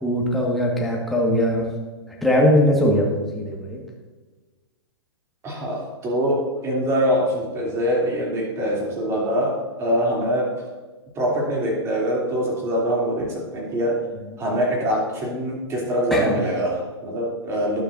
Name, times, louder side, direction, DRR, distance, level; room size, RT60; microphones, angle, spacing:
voice 1, 0.0-1.7 2.1-3.8 16.1-16.3, equal, ahead, -3 dB, 1.8 m, -20 dB
voice 2, 5.4-10.5 11.1-14.0 14.4-17.8, equal, 20° right, -2 dB, 3.1 m, -23 dB
19.5 x 7.0 x 2.7 m, 1.4 s
figure-of-eight pair, 110°, 14 cm